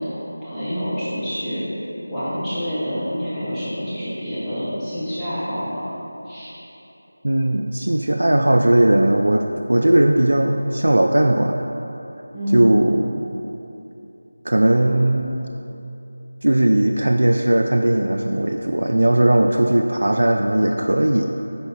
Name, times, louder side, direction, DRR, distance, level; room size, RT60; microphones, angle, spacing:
voice 1, 0.0-1.6 2.1-5.8 6.2-6.5 12.3-12.7, equal, 5° left, -14 dB, 1.0 m, -27 dB
voice 2, 7.2-11.7 12.5-13.2 14.4-15.4 16.4-21.2, right 1 dB, 75° right, 3 dB, 0.4 m, -18 dB
8.4 x 5.7 x 4.2 m, 2.9 s
figure-of-eight pair, 180°, 0 cm